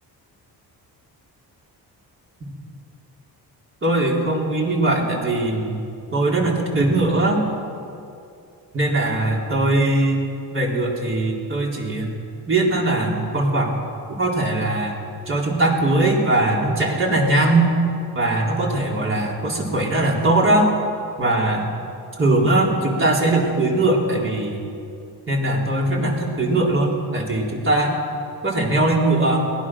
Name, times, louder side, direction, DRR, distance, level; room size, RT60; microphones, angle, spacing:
voice 1, 3.8-5.7 6.1-7.4 8.7-10.2 10.5-12.1 12.5-13.7 14.1-15.0 15.3-17.7 18.1-20.7 21.2-21.7 22.2-24.6 25.3-27.9 28.4-29.5, right 2 dB, 30° right, -2 dB, 4.1 m, -20 dB
23.0 x 18.5 x 6.3 m, 2.5 s
cardioid pair, 140°, 39 cm